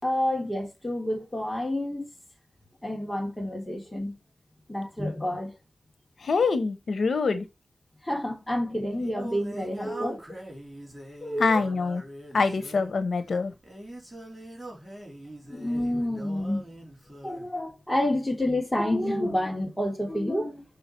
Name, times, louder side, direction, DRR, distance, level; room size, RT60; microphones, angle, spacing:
voice 1, 0.0-2.1 2.8-4.2 4.7-5.5 8.0-10.2 11.2-11.7 15.5-16.8 17.2-20.6, left 1 dB, 15° left, 3.1 m, -29 dB
voice 2, 6.2-7.4 11.4-12.0 12.3-13.5, left 4 dB, 85° left, 1.0 m, -25 dB
Singing, 8.5-17.5, right 1 dB, 10° right, 3.8 m, -44 dB
6.5 x 5.6 x 4.5 m
wide cardioid pair, 85°, 0 cm